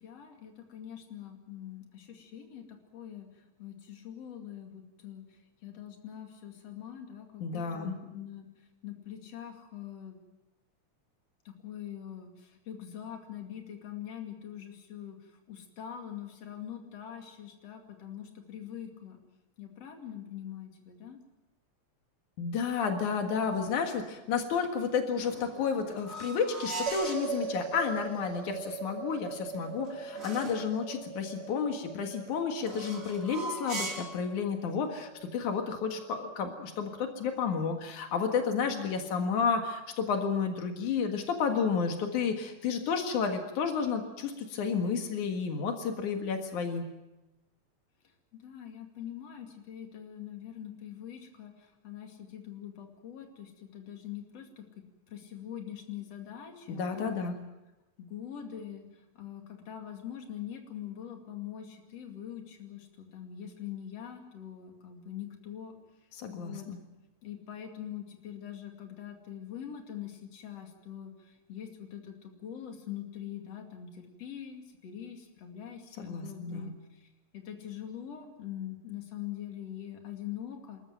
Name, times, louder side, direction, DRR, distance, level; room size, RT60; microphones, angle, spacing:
voice 1, 0.0-3.3 3.6-5.2 5.6-8.5 8.8-10.2 11.5-15.2 15.5-19.2 19.6-21.2 38.6-39.3 48.4-54.6 55.1-57.3 58.0-58.9 59.2-65.7 66.3-66.7 67.2-76.7 77.3-80.8, left 10 dB, 55° left, 4 dB, 3.5 m, -43 dB
voice 2, 7.4-8.0 22.4-46.9 56.7-57.3 66.1-66.8 76.0-76.7, left 6 dB, 90° left, 5 dB, 3.2 m, -31 dB
sound 1, 25.1-27.3 29.3-30.7 32.6-34.2, right 2 dB, 25° right, 3.7 m, -40 dB
sound 2, 26.9-37.3, right 4 dB, 60° right, 4.7 m, -41 dB
27.0 x 14.0 x 9.1 m, 1.0 s
omnidirectional pair, 3.4 m